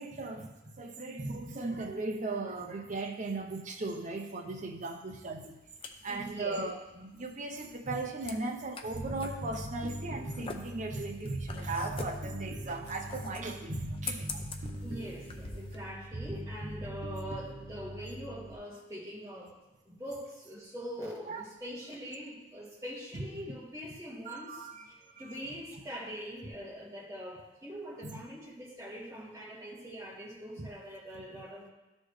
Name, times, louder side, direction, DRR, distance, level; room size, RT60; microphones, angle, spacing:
voice 1, 0.0-5.6 6.0-14.4 21.3-21.4 23.1-23.2 24.3-25.4 28.0-28.2 30.6-30.7 31.3-31.4, right 2 dB, 40° right, 3 dB, 0.7 m, -37 dB
sound 1, 5.4-15.8, left 4 dB, 30° left, 0.5 m, -45 dB
voice 2, 6.1-6.7 14.8-19.5 19.9-24.7 25.2-31.7, equal, 15° right, -6 dB, 1.9 m, -43 dB
Bass guitar, 8.9-18.5, right 1 dB, 80° right, 0.9 m, -41 dB
12.5 x 4.3 x 3.2 m, 1.0 s
head